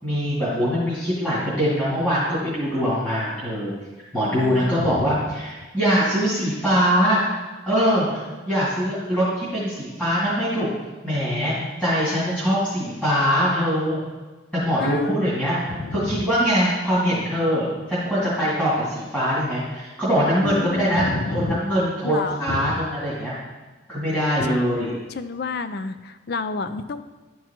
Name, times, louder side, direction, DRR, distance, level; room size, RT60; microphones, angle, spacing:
voice 1, 0.0-3.7 4.1-7.2 7.7-10.7 11.0-14.0 14.5-15.6 15.9-21.0 21.3-23.3 23.9-24.9, equal, 5° left, -11 dB, 2.3 m, -22 dB
voice 2, 4.3-5.3 14.8-15.2 15.7-16.3 20.4-21.6 22.0-22.8 24.4-24.8 25.1-27.1, left 4 dB, 50° left, 11 dB, 0.4 m, -30 dB
11.5 x 4.7 x 4.4 m, 1.3 s
head